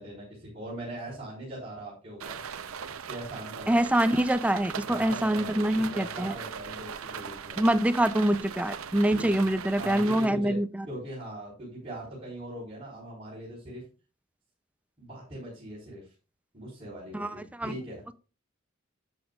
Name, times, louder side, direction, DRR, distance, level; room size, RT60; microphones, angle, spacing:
voice 1, 0.0-2.4 3.1-3.9 4.9-7.6 9.1-9.3 9.8-10.6 10.9-13.8 15.0-16.1 16.5-18.0, right 1 dB, 30° right, -7 dB, 4.2 m, -40 dB
sound 1, 2.2-10.3, right 7 dB, 85° right, 0.7 m, -39 dB
voice 2, 3.7-6.3 7.6-10.7 17.1-17.7, right 1 dB, 5° right, 13 dB, 0.5 m, -25 dB
11.0 x 8.1 x 2.4 m, 0.33 s
head